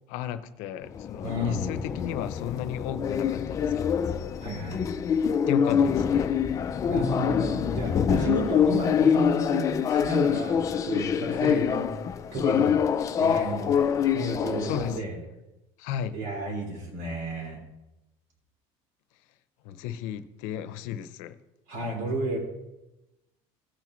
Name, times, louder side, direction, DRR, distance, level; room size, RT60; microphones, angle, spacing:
voice 1, 0.1-4.1 5.5-6.4 11.4-11.6 14.6-15.0 15.8-16.2 19.6-21.3, left 9 dB, 65° left, 0.7 m, -35 dB
sound 1, 0.8-15.0, left 7 dB, 25° left, 0.4 m, -25 dB
voice 2, 1.2-1.6 4.4-4.9 6.9-11.9 12.3-12.7 13.2-13.7 14.1-15.2 16.1-17.6 21.7-22.4, right 1 dB, 90° right, 3.1 m, -32 dB
17.0 x 6.0 x 3.1 m
cardioid pair, 170°, 14 cm